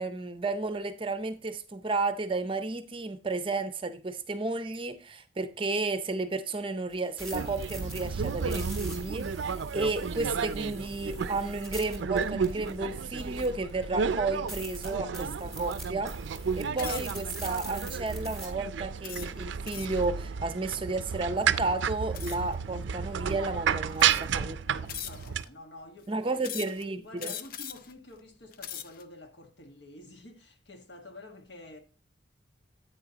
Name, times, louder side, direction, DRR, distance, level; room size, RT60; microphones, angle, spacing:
voice 1, 0.0-16.1 16.6-24.6 26.1-27.3, right 3 dB, 30° right, 0.5 m, -32 dB
sound 1, 6.9-13.7 14.1-14.2 14.5-18.5, right 1 dB, ahead, 2.2 m, -44 dB
sound 2, 7.3-25.4, right 7 dB, 80° right, 0.4 m, -32 dB
sound 3, 16.7-17.2 17.8-18.1 19.0-20.1 22.1-22.5 23.4-23.5 23.9-24.4 24.9-25.5 26.4-26.8 27.2-27.9 28.4-29.0, left 9 dB, 50° left, 0.5 m, -40 dB
voice 2, 23.9-26.8 27.0-31.8, left 2 dB, 70° left, 1.5 m, -49 dB
9.9 x 8.4 x 2.8 m
head